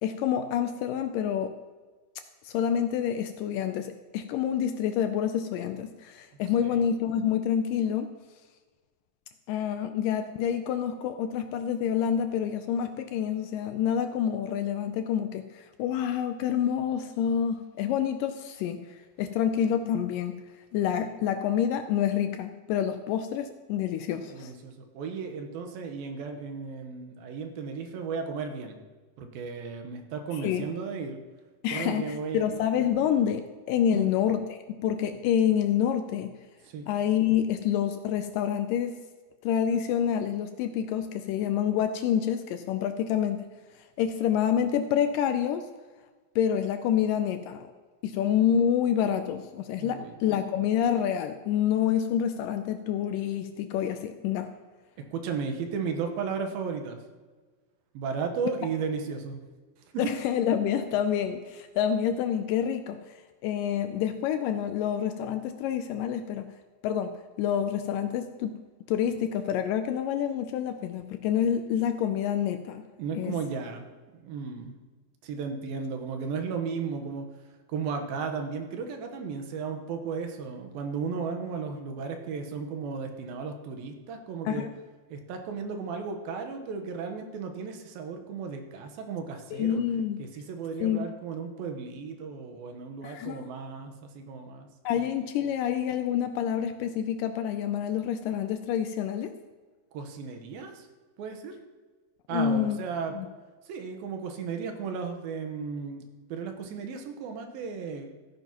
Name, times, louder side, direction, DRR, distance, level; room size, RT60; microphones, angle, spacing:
voice 1, 0.0-1.5 2.4-8.1 9.5-18.8 19.2-20.3 20.7-24.5 30.4-30.6 31.6-36.3 36.9-39.0 39.4-43.4 44.0-45.7 46.4-47.7 48.0-54.5 60.0-63.0 63.4-66.5 66.8-67.1 67.4-68.6 68.9-72.8 73.2-73.4 84.5-84.7 89.5-90.2 90.8-91.1 93.0-93.5 94.9-99.3 102.3-102.8 103.1-103.3, left 9 dB, 80° left, 8 dB, 2.0 m, -27 dB
voice 2, 24.3-28.8 29.2-31.2 31.7-32.6 33.9-34.1 36.7-36.9 49.8-50.2 55.0-57.0 57.9-59.4 59.9-60.1 73.0-73.9 74.1-74.7 75.2-77.3 77.7-84.7 85.1-89.8 90.2-94.7 94.9-95.0 99.9-100.9 101.2-101.6 102.3-103.1 103.7-106.0 106.3-108.1, right 5 dB, 90° right, 5 dB, 2.9 m, -35 dB
15.0 x 10.5 x 2.9 m, 1.4 s
omnidirectional pair, 4.2 m